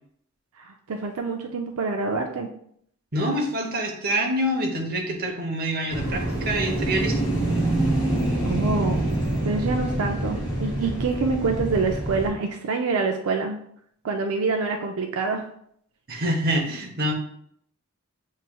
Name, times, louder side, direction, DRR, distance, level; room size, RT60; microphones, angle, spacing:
voice 1, 0.6-2.5 8.4-9.0 9.4-13.6 14.0-15.5, right 4 dB, 80° right, 3 dB, 0.5 m, -26 dB
voice 2, 3.1-7.2 16.1-17.1, right 1 dB, 45° right, 2 dB, 0.8 m, -26 dB
sound 1, 5.9-12.3, right 1 dB, 25° left, 2.0 m, -26 dB
7.3 x 3.1 x 2.3 m, 0.67 s
head